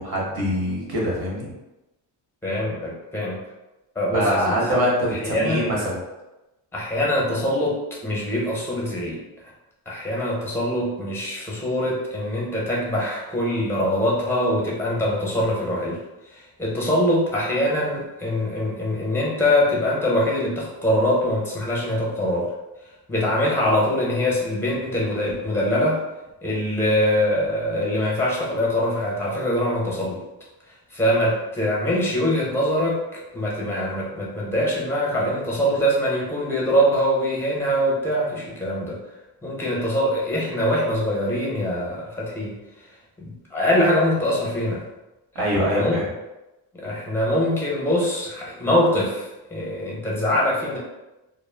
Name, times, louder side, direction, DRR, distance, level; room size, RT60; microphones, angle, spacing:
voice 1, 0.0-1.5 4.1-6.0 45.3-46.1, equal, 55° right, -4 dB, 1.1 m, -23 dB
voice 2, 2.4-3.4 3.9-4.6 5.2-5.7 6.7-7.8 8.0-9.2 9.9-16.0 16.3-22.5 23.1-26.0 26.4-30.2 30.9-33.0 33.3-39.0 39.4-42.6 43.2-44.8 45.4-45.9 46.7-50.8, left 1 dB, 5° left, -4 dB, 0.8 m, -23 dB
2.1 x 2.1 x 3.3 m, 0.99 s
cardioid pair, 120°, 45 cm